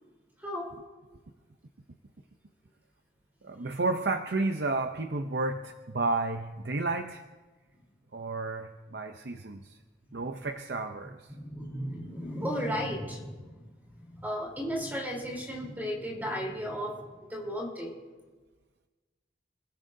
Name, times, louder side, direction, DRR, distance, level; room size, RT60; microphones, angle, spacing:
voice 1, 0.4-0.8 10.1-10.5 11.3-13.6 13.9-18.0, equal, 10° right, -2 dB, 3.7 m, -35 dB
voice 2, 3.4-7.2 8.1-9.8 10.1-11.3, right 3 dB, 65° right, 6 dB, 0.7 m, -32 dB
30.0 x 16.5 x 2.7 m, 1.3 s
head